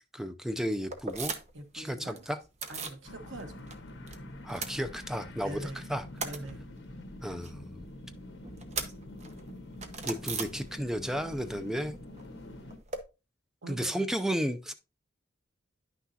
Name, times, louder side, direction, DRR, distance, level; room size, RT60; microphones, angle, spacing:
voice 1, 0.1-1.3 1.7-2.4 4.4-6.0 7.2-7.9 10.0-11.9 13.7-14.7, equal, ahead, 0.5 m, -33 dB
sound 1, 0.9-1.7 1.9-3.0 3.4-4.2 4.4-5.4 5.8-11.1 11.4-13.0, right 4 dB, 35° right, 0.9 m, -40 dB
voice 2, 1.5-2.2 2.7-3.6 5.4-5.9 6.2-6.6 7.2-7.4 13.6-14.1, right 2 dB, 80° right, 1.4 m, -44 dB
sound 2, 3.0-12.8, left 1 dB, 70° left, 1.4 m, -46 dB
10.5 x 6.1 x 2.8 m
head